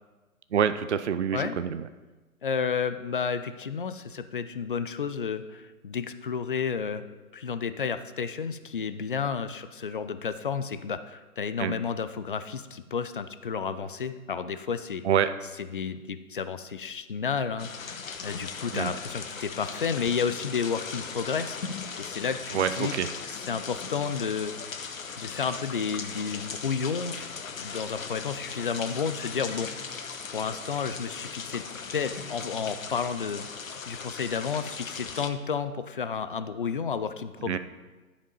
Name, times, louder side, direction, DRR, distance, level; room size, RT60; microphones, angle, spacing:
voice 1, 0.5-1.8 11.6-11.7 15.0-15.3 18.7-18.9 22.5-23.1 37.5-37.6, right 8 dB, 50° right, 12 dB, 0.5 m, -26 dB
voice 2, 2.4-7.0 7.3-15.0 15.6-17.7 18.2-22.9 23.2-24.5 25.2-27.3 27.6-29.7 30.3-31.6 31.9-33.5 33.9-37.6, left 6 dB, 40° left, 11 dB, 0.4 m, -31 dB
sound 1, 17.6-35.3, left 5 dB, 65° left, 1.0 m, -38 dB
11.5 x 5.2 x 5.4 m, 1.2 s
figure-of-eight pair, 145°, 44 cm